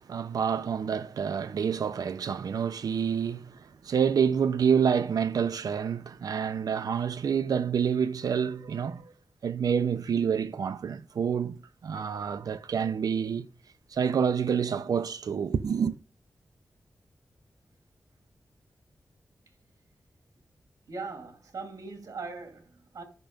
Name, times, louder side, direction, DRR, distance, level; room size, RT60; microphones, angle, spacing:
voice 1, 0.1-9.1 9.4-13.5 13.9-15.9, right 7 dB, 90° right, 0.7 m, -28 dB
voice 2, 20.9-23.0, right 4 dB, 70° right, 2.5 m, -40 dB
12.5 x 6.1 x 5.2 m
wide cardioid pair, 170°, 6 cm